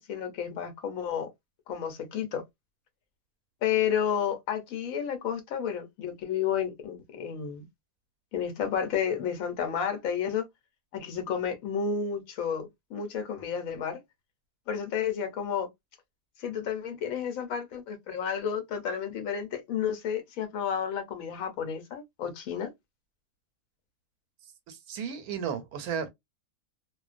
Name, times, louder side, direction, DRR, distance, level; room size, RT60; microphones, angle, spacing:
voice 1, 0.1-1.3 1.7-2.4 3.6-7.7 8.3-10.4 10.9-14.0 14.7-15.7 16.4-22.7, left 8 dB, 75° left, 1.0 m, -31 dB
voice 2, 24.7-26.1, right 7 dB, 85° right, 1.1 m, -34 dB
2.4 x 2.1 x 2.4 m
omnidirectional pair, 1.6 m